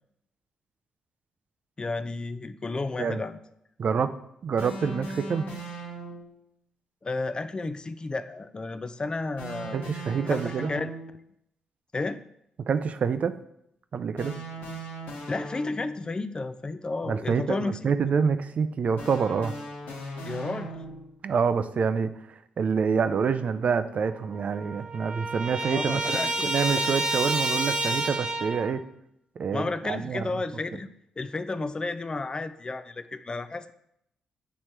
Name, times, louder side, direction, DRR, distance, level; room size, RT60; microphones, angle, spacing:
voice 1, 1.8-3.4 7.0-9.8 10.2-10.9 11.9-12.2 15.3-17.8 20.3-20.7 25.6-26.5 26.8-27.0 29.5-30.9 31.2-33.7, left 3 dB, 30° left, 11 dB, 0.4 m, -32 dB
voice 2, 3.8-4.1 4.4-5.5 9.7-10.7 12.7-13.3 13.9-14.4 17.1-19.5 21.2-22.1 22.6-28.8 29.4-30.3, right 6 dB, 55° right, 11 dB, 0.5 m, -27 dB
sound 1, 4.6-6.4 9.4-11.2 14.2-16.1 19.0-21.2, right 2 dB, 75° left, 1.3 m, -38 dB
Trumpet, 24.0-24.1 24.3-28.7, right 2 dB, 40° right, 1.1 m, -29 dB
8.0 x 3.1 x 4.4 m, 0.76 s
supercardioid pair, 45°, 3 cm